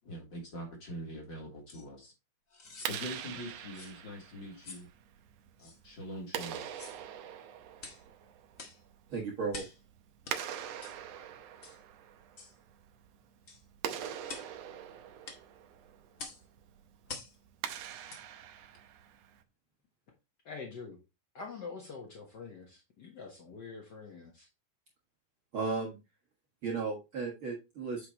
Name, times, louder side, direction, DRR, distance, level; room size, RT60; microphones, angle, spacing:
voice 1, 0.0-2.1 2.9-4.9 5.6-6.7, equal, 35° left, 3.4 m, -43 dB
sound 1, 1.7-1.8 2.5-3.0 3.7-4.0 4.6-4.9 5.6-5.8 6.7-7.0 7.8-8.0 8.6-8.8 9.5-9.8 10.2-10.4 10.8-11.0 11.6-11.8 12.4-12.6 13.5-13.6 14.3-14.5 15.2-15.4 16.2-16.4 17.1-17.3 18.1-18.2 18.7-18.8, left 4 dB, 55° left, 0.9 m, -46 dB
Clapping, 2.7-19.4, right 9 dB, 85° right, 1.4 m, -44 dB
voice 2, 9.1-9.6 25.5-26.0 26.6-28.1, right 4 dB, 50° right, 1.8 m, -34 dB
voice 3, 20.4-21.0 21.3-24.5, left 4 dB, 75° left, 0.9 m, -45 dB
8.3 x 5.7 x 3.0 m
omnidirectional pair, 4.0 m